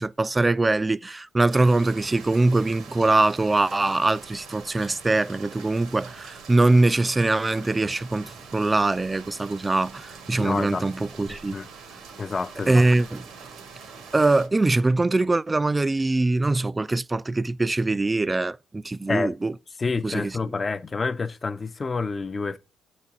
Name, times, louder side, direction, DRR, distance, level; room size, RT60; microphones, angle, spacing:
voice 1, 0.0-11.6 12.7-13.2 14.1-19.5 20.0-20.3, right 2 dB, 20° right, 0.3 m, -22 dB
sound 1, 1.5-14.5, right 5 dB, 80° right, 1.6 m, -44 dB
voice 2, 10.4-10.9 11.5-11.7 12.2-12.9 19.1-19.3 19.8-22.6, left 4 dB, 30° left, 0.6 m, -28 dB
8.7 x 4.2 x 3.6 m
cardioid pair, 90°, 0 cm